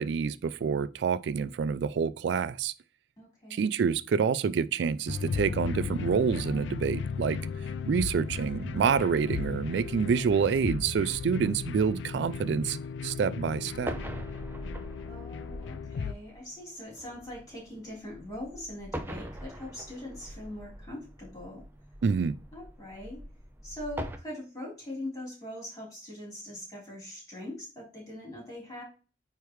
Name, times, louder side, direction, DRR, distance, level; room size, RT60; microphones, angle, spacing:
voice 1, 0.0-2.7 3.5-7.4 7.9-12.8 13.0-14.0 22.0-22.3, right 6 dB, 70° right, 0.3 m, -27 dB
voice 2, 3.2-3.6 15.1-21.6 22.5-23.2 23.6-28.8, left 1 dB, 20° left, 3.6 m, -42 dB
sound 1, 5.1-16.1, left 5 dB, 80° left, 0.3 m, -36 dB
sound 2, 13.7-24.2, equal, 10° right, 0.6 m, -42 dB
9.1 x 3.4 x 3.1 m
head